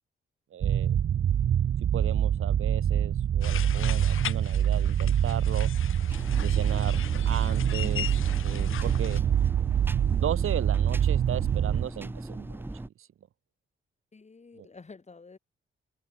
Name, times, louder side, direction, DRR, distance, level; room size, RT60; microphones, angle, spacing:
voice 1, 0.5-1.0 1.9-5.7 6.4-8.1 8.4-9.2 10.1-12.7 13.0-13.1 14.6-14.7, right 10 dB, 80° right, 1.8 m, -36 dB
sound 1, 0.6-11.9, right 9 dB, 65° right, 0.9 m, -25 dB
sound 2, 3.4-9.2, left 10 dB, 75° left, 0.9 m, -39 dB
sound 3, 6.1-12.9, right 2 dB, 10° right, 0.7 m, -39 dB
voice 2, 14.1-15.4, left 4 dB, 35° left, 5.2 m, -49 dB
cardioid pair, 100°, 21 cm